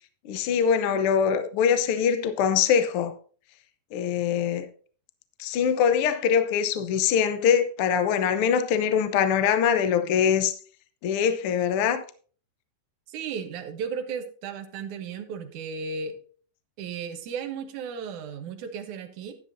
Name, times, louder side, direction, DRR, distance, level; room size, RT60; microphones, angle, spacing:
voice 1, 0.2-3.1 3.9-4.7 5.4-10.5 11.0-12.0, left 7 dB, 75° left, 1.3 m, -23 dB
voice 2, 13.1-16.2 16.8-19.4, right 6 dB, 70° right, 2.5 m, -35 dB
11.5 x 11.0 x 2.6 m
omnidirectional pair, 3.7 m